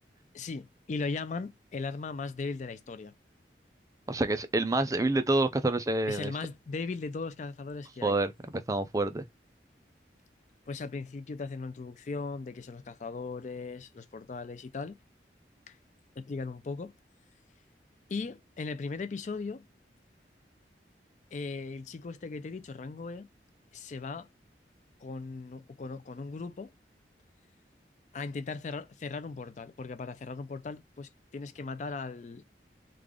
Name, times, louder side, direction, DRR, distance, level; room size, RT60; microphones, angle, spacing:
voice 1, 0.3-3.1 6.0-8.2 10.7-15.0 15.7-15.8 16.2-16.9 18.1-19.7 21.3-23.3 23.7-24.3 25.0-26.7 28.1-32.4, left 4 dB, 40° left, 0.4 m, -38 dB
voice 2, 4.1-6.3 8.0-8.3 8.7-9.2, right 2 dB, 20° right, 0.4 m, -27 dB
3.3 x 2.4 x 3.6 m
head